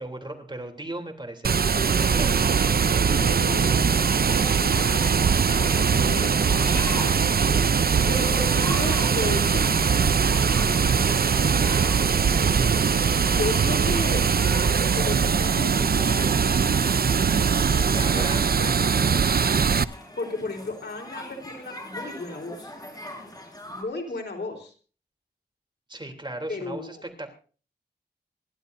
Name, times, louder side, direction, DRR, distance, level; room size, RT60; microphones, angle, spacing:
voice 1, 0.0-2.6 17.8-18.4 25.9-27.3, right 1 dB, 25° right, 4 dB, 3.2 m, -37 dB
Water, 1.4-19.8, right 6 dB, 60° right, 0.6 m, -21 dB
voice 2, 2.9-4.2 4.6-5.0 5.5-7.2 8.1-9.9 10.7-11.6 13.2-14.3 14.9-16.4 17.8-18.9 20.2-22.7 23.7-24.7 26.5-27.0, left 2 dB, 85° left, 2 dB, 3.8 m, -34 dB
sound 1, 4.1-23.8, left 1 dB, 20° left, 5.3 m, -42 dB
27.0 x 12.0 x 2.7 m, 0.39 s
wide cardioid pair, 60°, 17 cm